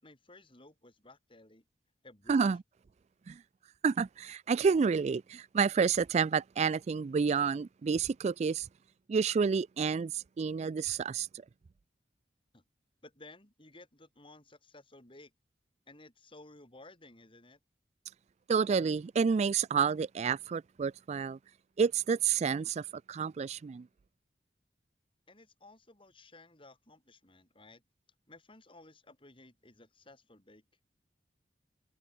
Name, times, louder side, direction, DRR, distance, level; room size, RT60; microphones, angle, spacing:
voice 1, 0.0-1.6 2.0-2.4 12.5-12.6 13.0-15.3 15.9-17.6 25.3-27.8 28.3-30.6, left 2 dB, 30° left, 5.8 m, -56 dB
voice 2, 3.8-8.7 9.1-11.3 18.5-21.4 21.8-23.9, right 6 dB, 40° right, 0.3 m, -29 dB
head